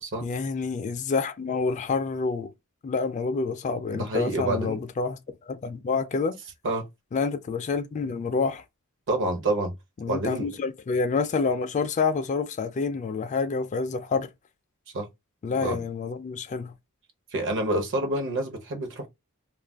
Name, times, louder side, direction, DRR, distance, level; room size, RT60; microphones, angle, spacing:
voice 1, 0.2-2.5 2.8-5.2 5.5-6.3 7.1-8.6 10.0-14.3 15.4-16.7, left 4 dB, 35° left, 0.3 m, -28 dB
voice 2, 3.9-4.8 6.6-6.8 9.1-9.7 10.1-10.5 14.9-15.1 15.6-15.8 17.3-19.1, right 1 dB, 55° right, 0.7 m, -28 dB
2.4 x 2.2 x 3.3 m
head